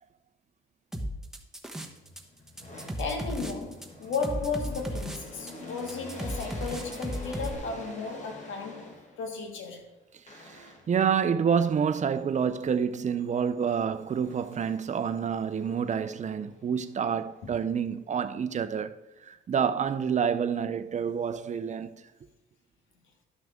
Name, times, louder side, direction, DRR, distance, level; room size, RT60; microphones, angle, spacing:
sound 1, 0.9-2.2 2.5-7.5, equal, ahead, 1.1 m, -35 dB
sound 2, 1.7-9.4 10.3-11.1 14.2-15.1 15.5-17.9, left 1 dB, 35° left, 2.0 m, -47 dB
voice 1, 3.0-9.8 17.4-17.5, left 4 dB, 75° left, 1.7 m, -34 dB
voice 2, 10.3-18.9 19.2-22.0, right 7 dB, 35° right, 0.6 m, -28 dB
12.0 x 5.9 x 3.6 m
cardioid pair, 90°, 20 cm